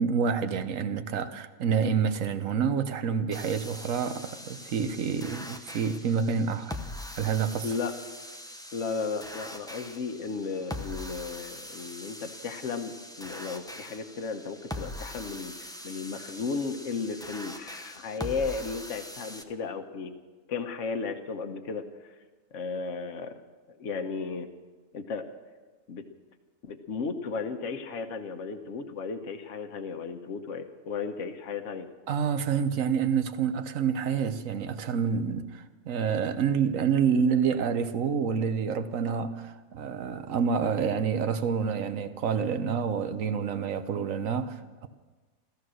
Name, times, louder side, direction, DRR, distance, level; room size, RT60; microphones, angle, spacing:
voice 1, 0.0-6.7 7.2-7.7 32.1-44.9, right 6 dB, 70° right, 1.2 m, -28 dB
sound 1, 3.3-19.4, left 1 dB, 5° left, 0.5 m, -42 dB
voice 2, 7.6-7.9 8.7-20.1 20.5-22.2 22.5-23.3 23.7-24.5 24.9-25.3 25.9-26.0 26.6-31.9, left 5 dB, 60° left, 1.3 m, -34 dB
14.5 x 14.0 x 6.3 m
omnidirectional pair, 1.5 m